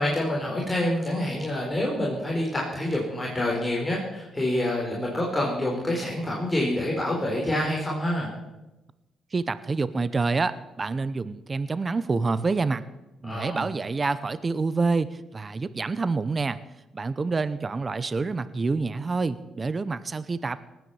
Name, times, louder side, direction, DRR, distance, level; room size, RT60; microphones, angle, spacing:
voice 1, 0.0-8.3 13.2-13.7, left 1 dB, 15° left, -4 dB, 4.5 m, -27 dB
voice 2, 9.3-12.8 13.2-16.6 16.9-20.6, right 4 dB, 30° right, 15 dB, 0.8 m, -27 dB
19.0 x 9.4 x 7.1 m, 1.0 s
cardioid pair, 90°, 0 cm